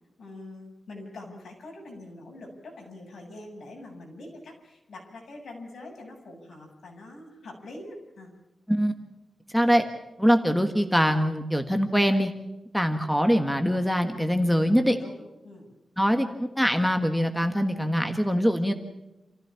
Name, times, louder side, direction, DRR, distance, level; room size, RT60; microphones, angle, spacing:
voice 1, 0.2-8.3 15.0-15.7, left 2 dB, 70° left, 1 dB, 7.7 m, -44 dB
voice 2, 9.5-9.8 10.2-12.3 12.7-15.0 16.0-18.7, equal, ahead, 6 dB, 1.5 m, -23 dB
29.0 x 15.5 x 7.1 m, 0.98 s
wide cardioid pair, 170°, 0 cm